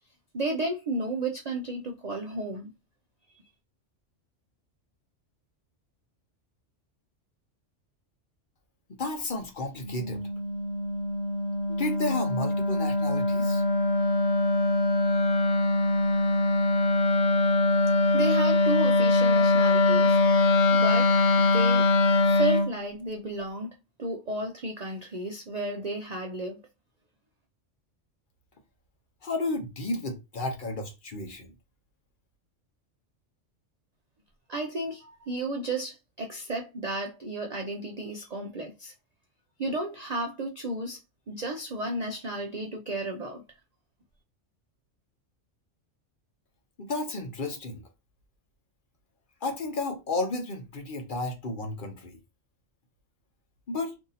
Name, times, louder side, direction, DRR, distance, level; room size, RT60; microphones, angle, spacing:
voice 1, 0.3-2.7 17.4-21.9 22.2-23.7 24.0-26.6 34.5-38.9 39.6-41.0 41.3-43.4, right 2 dB, 55° right, 0.4 m, -33 dB
voice 2, 9.0-10.2 11.8-13.6 29.2-31.5 46.8-47.8 49.4-52.2 53.7-53.9, left 2 dB, 50° left, 0.8 m, -32 dB
Wind instrument woodwind instrument, 9.8-22.7, left 2 dB, 85° left, 1.0 m, -23 dB
2.7 x 2.7 x 4.0 m
omnidirectional pair, 1.3 m